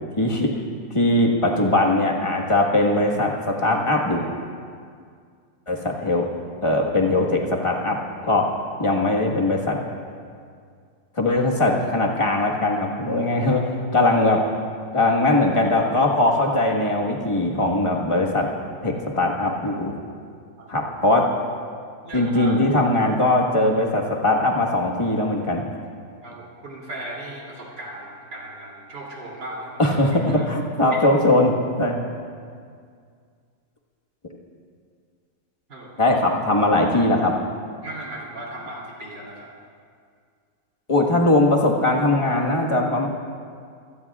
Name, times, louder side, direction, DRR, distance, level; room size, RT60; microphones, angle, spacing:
voice 1, 0.2-0.5 0.9-4.2 5.7-6.3 6.6-8.0 8.3-8.5 8.8-9.8 11.2-13.6 13.9-14.4 14.9-18.5 18.8-19.9 20.7-21.2 22.1-25.6 29.8-32.0 36.0-37.3 40.9-43.1, left 2 dB, 20° left, -1 dB, 1.4 m, -20 dB
voice 2, 22.0-22.6 26.2-29.8 30.4-30.5 35.7-36.0 37.8-39.5, right 1 dB, 70° right, -3 dB, 3.8 m, -37 dB
25.0 x 17.5 x 2.4 m, 2.2 s
omnidirectional pair, 2.0 m